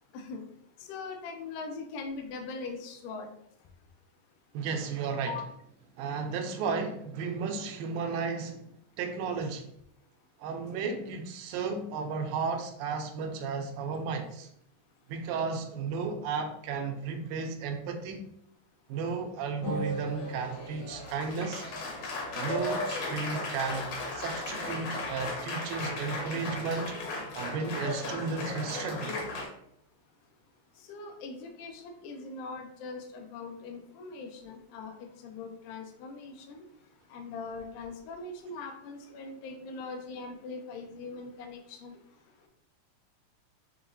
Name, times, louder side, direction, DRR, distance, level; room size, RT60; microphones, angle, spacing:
voice 1, 0.9-3.3 5.3-5.5 30.9-36.6 37.1-42.0, left 4 dB, 80° left, 4 dB, 2.1 m, -41 dB
voice 2, 4.5-5.4 6.0-9.7 10.4-14.5 15.1-18.3 18.9-21.7 22.4-26.9 27.4-29.2, right 5 dB, 90° right, 5 dB, 2.4 m, -34 dB
Applause, 19.6-29.5, left 2 dB, 65° left, 1.7 m, -36 dB
7.0 x 2.9 x 2.6 m, 0.72 s
omnidirectional pair, 3.9 m